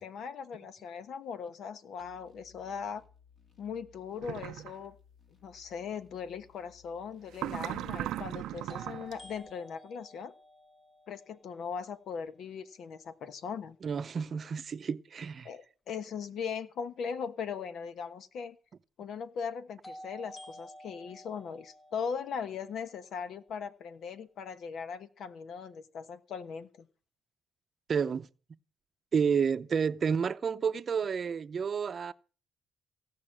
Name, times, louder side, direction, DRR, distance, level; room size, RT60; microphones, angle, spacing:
voice 1, 0.0-3.0 3.6-5.0 5.4-10.3 11.1-13.8 15.4-18.6 19.0-26.9, left 6 dB, 70° left, 1.2 m, -39 dB
sound 1, 2.0-9.5, left 7 dB, 50° left, 3.1 m, -62 dB
sound 2, 4.2-4.7 7.3-9.1, right 13 dB, 85° right, 0.6 m, -37 dB
sound 3, 6.7-6.8 8.7-12.6 19.8-23.9, equal, 30° left, 1.4 m, -52 dB
voice 2, 13.8-15.5 27.9-28.3 29.1-32.1, right 6 dB, 45° right, 0.7 m, -30 dB
16.5 x 5.8 x 8.6 m
cardioid pair, 90°, 0 cm